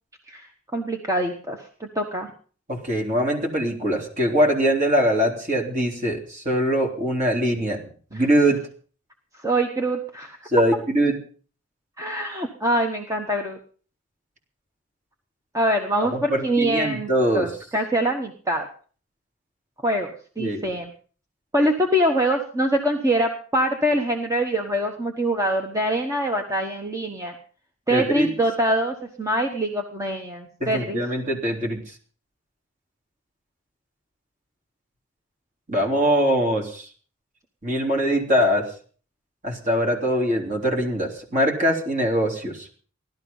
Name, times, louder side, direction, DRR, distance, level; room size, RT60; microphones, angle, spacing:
voice 1, 0.7-2.3 9.4-10.4 12.0-13.6 15.5-18.7 19.8-20.9 21.5-27.3 27.9-31.0, right 1 dB, 15° right, 3 dB, 1.3 m, -24 dB
voice 2, 2.7-7.8 8.1-8.6 10.5-11.2 16.1-17.5 20.4-20.7 27.9-28.3 30.6-31.8 35.7-36.9 37.6-38.7 39.4-42.7, equal, 35° right, 0 dB, 3.5 m, -22 dB
16.5 x 12.5 x 5.5 m, 0.43 s
head